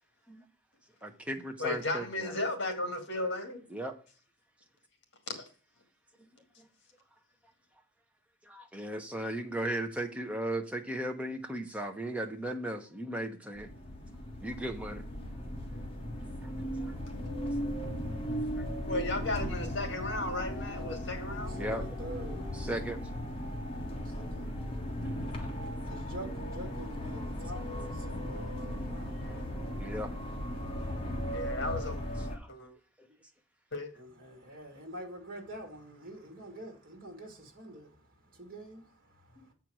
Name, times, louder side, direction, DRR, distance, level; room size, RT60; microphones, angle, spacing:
voice 1, 1.0-2.4 3.7-4.0 8.5-13.7 14.4-15.0 16.8-16.9 21.5-21.8 22.5-23.0 29.3-29.4 29.7-30.1 32.3-32.5, right 1 dB, 5° right, 1.0 m, -36 dB
voice 2, 1.6-3.6 5.3-5.4 18.9-21.5 31.3-32.0 32.5-32.7 33.7-33.9, left 2 dB, 55° left, 2.1 m, -34 dB
sound 1, 13.6-32.4, equal, 25° left, 1.4 m, -37 dB
voice 3, 21.5-22.6 24.0-24.5 25.9-29.5 34.0-38.0 38.2-39.5, right 1 dB, 45° right, 2.5 m, -46 dB
7.7 x 4.5 x 6.2 m
head